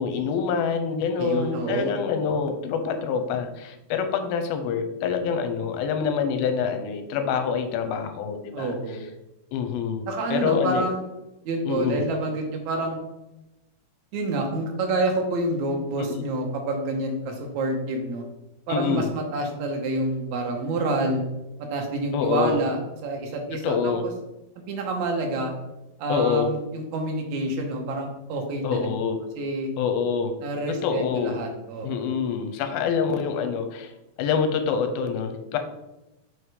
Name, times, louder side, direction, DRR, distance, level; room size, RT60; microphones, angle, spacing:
voice 1, 0.0-8.7 9.5-10.9 11.6-12.0 16.0-16.2 18.7-19.1 22.1-22.6 23.5-24.1 26.1-26.5 28.6-29.2 29.8-30.3 30.8-31.4 31.8-33.9 34.2-35.6, left 6 dB, 75° left, 7 dB, 2.4 m, -26 dB
voice 2, 1.2-1.9 8.5-9.0 10.1-11.0 11.5-13.0 14.1-18.2 18.7-21.2 21.7-24.1 24.7-25.5 26.0-28.9 29.4-29.7 30.4-32.2, right 2 dB, 70° right, 2 dB, 1.9 m, -28 dB
5.6 x 4.9 x 4.8 m, 0.97 s
omnidirectional pair, 4.5 m